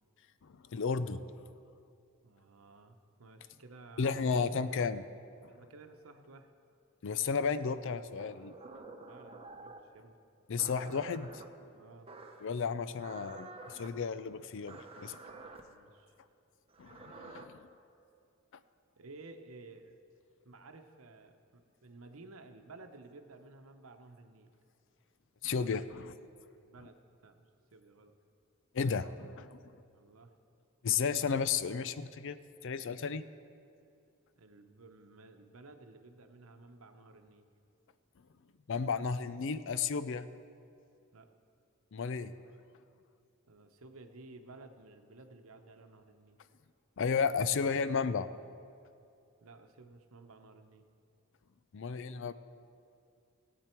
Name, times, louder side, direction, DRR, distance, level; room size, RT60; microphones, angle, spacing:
voice 1, 0.7-1.2 4.0-5.0 7.0-8.5 10.5-11.4 12.4-15.2 16.8-17.7 25.4-26.1 28.7-29.6 30.8-32.4 32.6-33.2 38.7-40.3 41.9-42.3 47.0-48.3 51.7-52.3, left 5 dB, 65° left, 13 dB, 0.5 m, -33 dB
voice 2, 2.2-4.8 5.4-6.5 9.0-10.1 11.7-12.1 15.6-16.2 19.0-20.0 20.4-24.5 25.9-26.2 26.6-28.1 29.9-30.3 34.4-37.5 41.1-41.3 43.5-46.4 49.4-50.8, right 3 dB, 80° right, 7 dB, 0.9 m, -54 dB
sound 1, 8.2-9.9 10.6-11.5 12.1-12.5 13.0-13.9 14.7-15.6 16.7-17.4, right 3 dB, 30° right, 0.8 m, -49 dB
17.5 x 8.6 x 4.5 m, 2.5 s
head